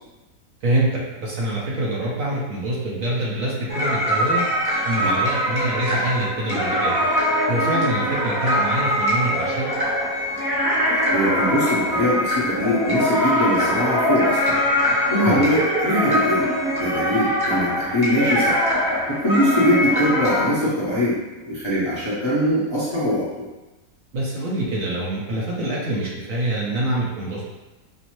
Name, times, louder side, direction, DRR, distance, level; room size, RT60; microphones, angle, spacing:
voice 1, 0.6-4.4 4.8-7.0 7.5-9.7 15.2-15.5 24.1-27.5, right 1 dB, 60° right, -5 dB, 1.1 m, -25 dB
sound 1, 3.7-20.5, equal, 25° right, 0.5 m, -22 dB
voice 2, 10.9-14.6 15.1-16.5 16.7-23.5, equal, 25° left, -10 dB, 0.6 m, -22 dB
5.3 x 2.0 x 3.0 m, 1.1 s
omnidirectional pair, 1.7 m